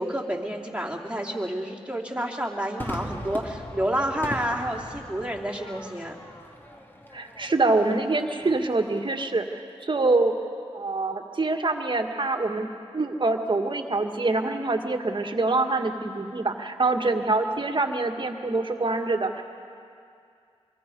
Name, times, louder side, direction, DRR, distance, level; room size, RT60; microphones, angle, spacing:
voice 1, 0.0-6.2, right 1 dB, 10° right, 0 dB, 3.1 m, -29 dB
Crowd / Fireworks, 2.8-9.3, equal, 20° left, 2.5 m, -40 dB
voice 2, 7.1-10.3 10.7-12.7 12.9-19.4, right 3 dB, 45° right, 4 dB, 1.8 m, -25 dB
23.5 x 23.5 x 5.4 m, 2.4 s
cardioid pair, 45°, 12 cm